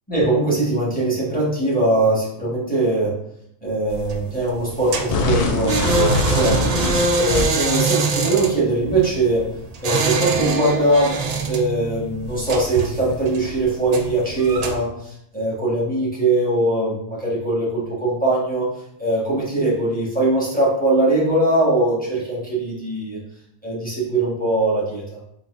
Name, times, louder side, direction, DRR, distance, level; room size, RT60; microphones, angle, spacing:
voice 1, 0.1-3.2 3.6-6.7 7.1-9.5 9.8-11.2 11.5-18.7 19.0-23.2 23.6-25.2, right 2 dB, 5° left, -6 dB, 1.2 m, -21 dB
sound 1, 3.9-14.8, right 4 dB, 65° right, 0.4 m, -25 dB
sound 2, 5.1-7.8, left 2 dB, 65° left, 0.4 m, -22 dB
4.2 x 3.9 x 2.5 m, 0.75 s
omnidirectional pair, 1.2 m